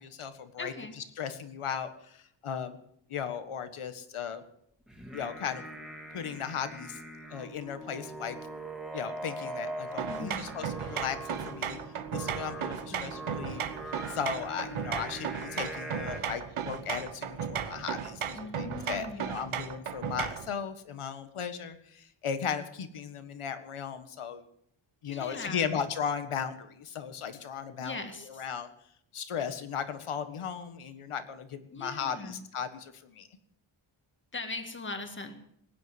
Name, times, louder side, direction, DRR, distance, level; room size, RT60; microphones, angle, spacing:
voice 1, 0.0-2.8 3.1-4.4 5.1-5.6 6.1-7.0 7.3-8.4 8.9-11.8 12.1-13.6 14.1-24.4 25.0-28.7 29.1-33.3, left 7 dB, 85° left, 10 dB, 1.7 m, -36 dB
voice 2, 0.6-1.0 10.1-10.6 12.9-13.2 18.3-19.4 25.1-25.8 27.8-28.4 31.7-32.5 34.3-35.3, left 3 dB, 25° left, 6 dB, 1.9 m, -40 dB
Singing, 4.9-16.2, right 1 dB, ahead, 2.2 m, -42 dB
sound 1, 10.0-20.5, right 8 dB, 80° right, 1.2 m, -36 dB
18.5 x 9.8 x 7.9 m, 0.70 s
wide cardioid pair, 170°, 49 cm